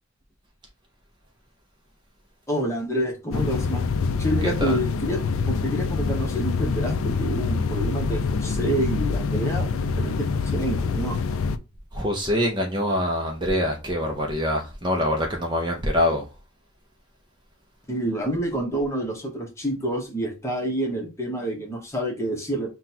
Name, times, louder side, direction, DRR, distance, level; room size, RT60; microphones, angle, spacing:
voice 1, 2.5-3.9 4.2-11.2 17.9-22.7, right 1 dB, 15° left, 0.9 m, -28 dB
sound 1, 3.3-11.6, left 4 dB, 70° left, 0.4 m, -25 dB
voice 2, 4.4-4.8 11.9-16.2, left 1 dB, 20° right, 0.6 m, -24 dB
5.8 x 2.3 x 2.8 m
head